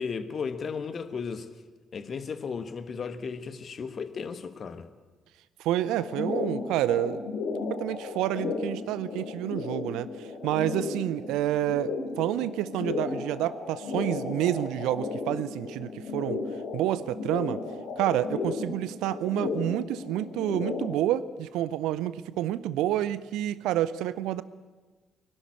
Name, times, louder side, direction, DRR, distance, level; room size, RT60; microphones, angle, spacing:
voice 1, 0.0-1.5 1.9-4.9, left 5 dB, 45° left, 10 dB, 1.5 m, -35 dB
voice 2, 5.6-7.2 7.8-16.4 16.7-17.6 18.0-24.4, right 13 dB, 65° right, 17 dB, 0.6 m, -29 dB
sound 1, 6.0-20.9, left 4 dB, 65° left, 2.8 m, -34 dB
22.5 x 12.0 x 9.9 m, 1.3 s
figure-of-eight pair, 40°, 0 cm